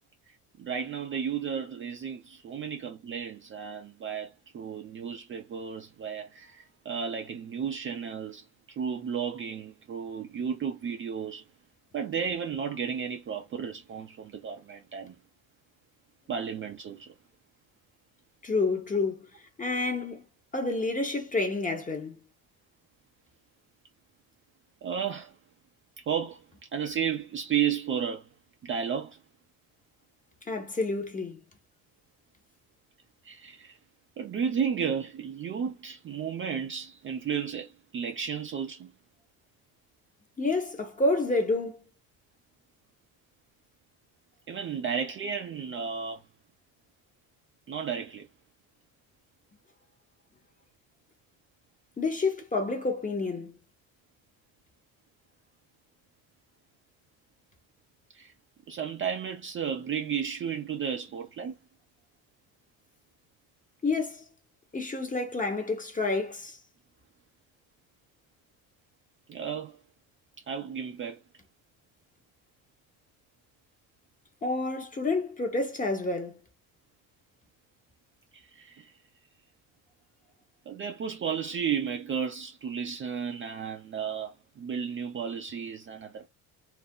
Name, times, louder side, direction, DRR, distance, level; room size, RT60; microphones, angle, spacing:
voice 1, 0.6-11.4 11.9-15.1 16.3-17.1 24.8-25.3 26.0-26.4 26.7-28.3 28.6-29.2 33.2-33.8 34.2-38.9 44.5-46.2 47.7-48.3 58.1-58.3 58.7-61.6 69.3-69.8 70.5-71.2 78.3-78.9 80.7-86.3, right 7 dB, 30° right, 0.4 m, -33 dB
voice 2, 18.4-20.2 20.5-22.2 30.5-31.4 40.4-41.9 52.0-53.6 63.8-64.2 64.7-66.6 74.4-76.4, left 3 dB, 20° left, 0.8 m, -29 dB
2.5 x 2.0 x 3.6 m
supercardioid pair, 85°, 40 cm